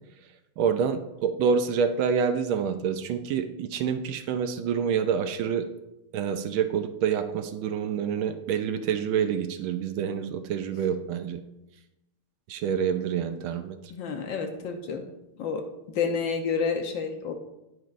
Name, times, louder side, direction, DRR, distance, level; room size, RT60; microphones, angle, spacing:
voice 1, 0.6-5.7 6.1-11.4 12.5-13.8, right 7 dB, 75° right, 8 dB, 1.3 m, -27 dB
voice 2, 13.9-15.0 15.4-15.6 15.9-17.4, left 5 dB, 65° left, 5 dB, 1.4 m, -29 dB
10.0 x 9.2 x 2.5 m, 0.94 s
omnidirectional pair, 2.4 m